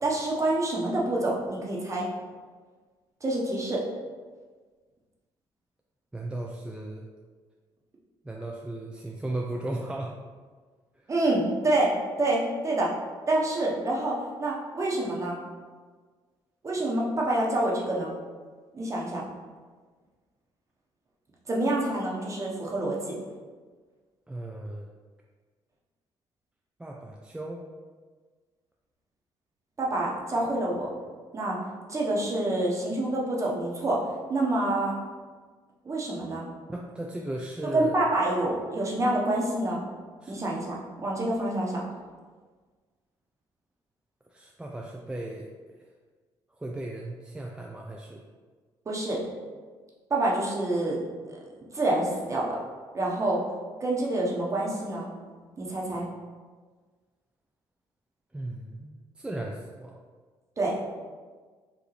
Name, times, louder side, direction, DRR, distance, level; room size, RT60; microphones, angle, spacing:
voice 1, 0.0-2.0 3.2-3.8 11.1-11.9 12.2-12.9 13.3-15.4 16.6-18.1 18.7-19.2 21.5-23.1 29.8-30.9 31.3-31.6 31.9-34.0 34.3-35.0 35.8-36.5 37.7-39.8 40.3-41.8 48.8-49.2 50.1-51.0 51.3-51.4 51.7-52.6 52.9-53.4 53.8-55.1 55.6-56.1 60.6-60.7, right 2 dB, 30° right, -3 dB, 1.1 m, -27 dB
voice 2, 6.1-7.1 8.2-10.1 11.0-11.1 24.3-24.9 26.8-27.6 36.7-38.0 40.2-40.4 44.3-45.5 46.6-48.2 58.3-60.0, right 1 dB, 10° right, -1 dB, 0.4 m, -36 dB
4.8 x 2.6 x 3.2 m, 1.5 s
supercardioid pair, 75°, 10 cm